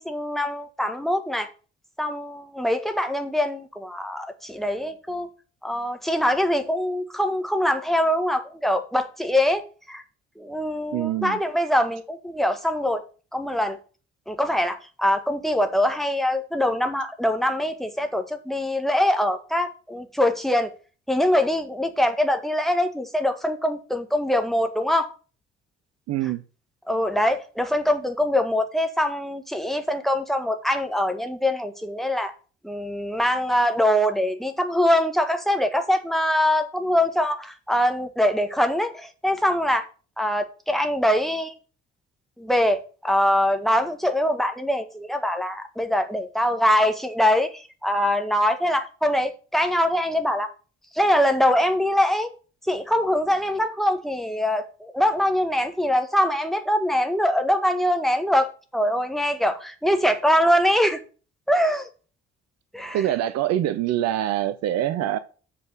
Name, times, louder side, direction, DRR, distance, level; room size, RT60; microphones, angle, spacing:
voice 1, 0.0-1.5 2.0-5.3 5.6-10.0 10.4-13.0 13.3-13.8 14.3-20.7 21.1-25.1 26.9-32.3 32.6-39.9 40.2-41.5 42.4-50.5 50.9-52.3 52.6-61.0 61.5-61.9 62.7-63.0, left 1 dB, ahead, 1.6 m, -23 dB
voice 2, 10.9-11.4 26.1-26.4 62.9-65.2, right 12 dB, 55° right, 0.8 m, -24 dB
6.5 x 5.4 x 6.4 m
figure-of-eight pair, 45°, 32 cm